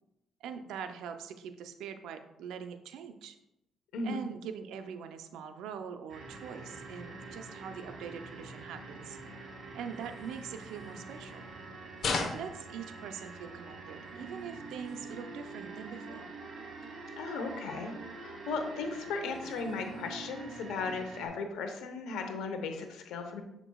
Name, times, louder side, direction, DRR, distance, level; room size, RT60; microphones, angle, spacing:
voice 1, 0.4-3.4 4.0-9.2 9.7-11.5 12.2-16.3, right 7 dB, 85° right, 8 dB, 0.5 m, -43 dB
sound 1, 6.1-21.3, right 3 dB, 50° right, 2.1 m, -45 dB
sound 2, 9.9-11.6 11.9-13.5 14.0-15.3 15.7-16.1 16.4-16.5 16.8-17.2 17.7-17.8 18.2-18.7 19.0-20.2, left 4 dB, 60° left, 0.9 m, -41 dB
voice 2, 17.2-23.4, left 4 dB, 90° left, 5 dB, 0.9 m, -36 dB
7.0 x 5.9 x 2.3 m, 0.89 s
cardioid pair, 90°, 0 cm